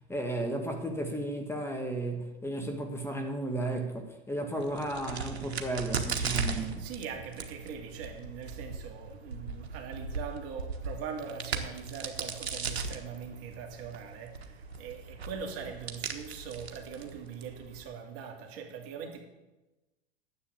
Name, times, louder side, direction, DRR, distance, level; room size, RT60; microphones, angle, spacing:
voice 1, 0.1-6.8, right 1 dB, 10° left, 3 dB, 1.7 m, -34 dB
Crack, 4.6-17.8, right 4 dB, 90° right, 1.3 m, -38 dB
voice 2, 6.8-19.2, right 6 dB, 45° right, 3 dB, 2.3 m, -42 dB
10.0 x 7.8 x 8.3 m, 1.1 s
hypercardioid pair, 95°, 31 cm